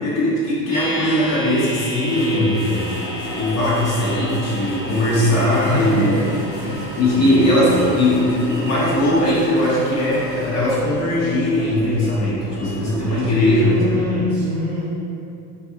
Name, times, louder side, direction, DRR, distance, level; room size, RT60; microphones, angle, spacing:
voice 1, 0.0-2.5 3.3-6.1 7.0-13.8, left 1 dB, 35° left, -7 dB, 0.7 m, -19 dB
sound 1, 0.7-10.7 11.0-11.1, left 1 dB, 10° right, 1.0 m, -35 dB
sound 2, 2.1-10.8, equal, 75° left, 1.2 m, -35 dB
voice 2, 2.3-2.9 5.7-6.2 6.6-6.9 7.2-7.9 13.6-14.9, equal, 40° right, -6 dB, 0.5 m, -26 dB
sound 3, 2.8-14.0, equal, 80° right, 0.8 m, -36 dB
2.4 x 2.3 x 2.8 m, 2.7 s
hypercardioid pair, 80°, 47 cm